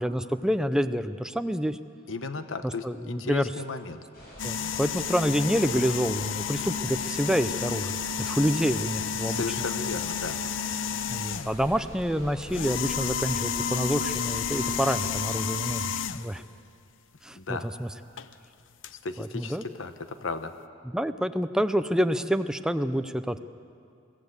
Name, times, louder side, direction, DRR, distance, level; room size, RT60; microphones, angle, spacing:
voice 1, 0.0-1.8 2.6-3.4 4.4-8.0 8.3-9.4 11.1-16.4 17.2-17.9 19.2-19.7 20.8-23.4, equal, 5° right, 10 dB, 0.6 m, -27 dB
voice 2, 2.1-4.0 9.2-10.4 17.4-17.7 18.9-20.5, left 3 dB, 90° left, 9 dB, 1.0 m, -35 dB
sound 1, 4.1-15.3, equal, 55° left, 7.7 m, -45 dB
sound 2, 4.4-11.7 12.4-16.4 18.2-18.3 18.8-18.9, left 7 dB, 70° left, 0.6 m, -31 dB
23.0 x 15.5 x 8.1 m, 2.4 s
head